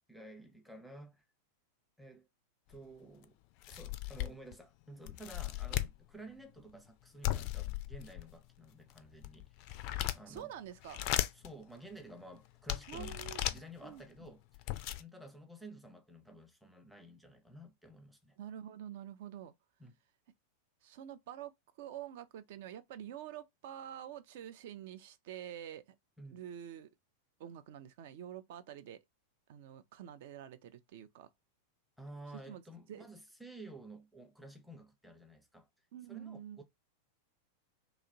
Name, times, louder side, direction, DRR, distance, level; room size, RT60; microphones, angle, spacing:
voice 1, 0.1-1.2 2.0-2.3 2.7-3.4 3.7-10.5 11.3-18.4 19.8-20.0 26.2-26.4 32.0-35.7 36.1-36.6, right 1 dB, ahead, 0.6 m, -52 dB
sound 1, 2.7-2.8 3.2-3.3 3.6-4.5 5.1-6.0 7.2-8.3 8.9-10.4 10.8-11.5 12.1-12.2 12.7-13.6 14.3-14.4 14.5-15.0, left 15 dB, 45° left, 0.3 m, -36 dB
voice 2, 10.0-11.1 12.9-13.4 13.8-14.3 18.4-19.5 20.8-21.5 21.8-25.8 26.3-26.9 27.4-29.0 29.5-31.3 32.5-32.6 32.9-33.1 35.9-36.6, right 10 dB, 50° right, 0.4 m, -47 dB
2.9 x 2.4 x 2.7 m
figure-of-eight pair, 90°, 0 cm